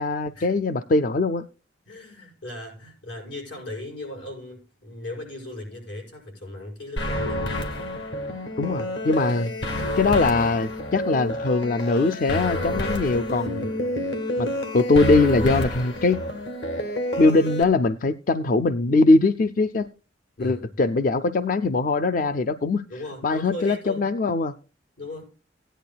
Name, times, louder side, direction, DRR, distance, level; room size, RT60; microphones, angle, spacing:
voice 1, 0.0-1.4 8.6-9.5 10.0-13.7 14.4-14.5 14.7-16.2 17.2-19.9 20.4-22.8 23.2-24.5, left 3 dB, 45° left, 0.4 m, -21 dB
voice 2, 1.9-7.5 13.6-13.9 20.4-20.7 22.9-24.1 25.0-25.2, left 1 dB, 90° left, 5.5 m, -37 dB
sound 1, 7.0-17.6, left 1 dB, 70° left, 2.1 m, -29 dB
17.0 x 10.0 x 2.2 m
head